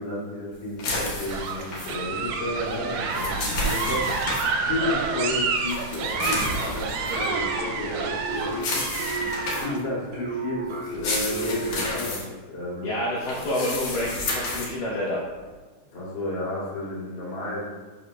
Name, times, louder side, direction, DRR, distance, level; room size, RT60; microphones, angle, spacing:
voice 1, 0.0-4.1 4.6-8.8 9.6-12.9 15.9-17.6, left 2 dB, 40° left, -7 dB, 1.7 m, -32 dB
sound 1, 0.8-1.9 2.9-4.5 5.7-7.3 8.5-9.8 10.8-12.2 13.2-14.7, left 2 dB, 65° left, 1.9 m, -31 dB
sound 2, 1.2-9.8, right 4 dB, 90° right, 3.0 m, -29 dB
sound 3, 7.3-12.1, right 4 dB, 65° right, 2.3 m, -34 dB
voice 2, 12.8-15.2, left 1 dB, 80° left, -5 dB, 1.9 m, -28 dB
7.4 x 6.6 x 2.2 m, 1.3 s
omnidirectional pair, 5.1 m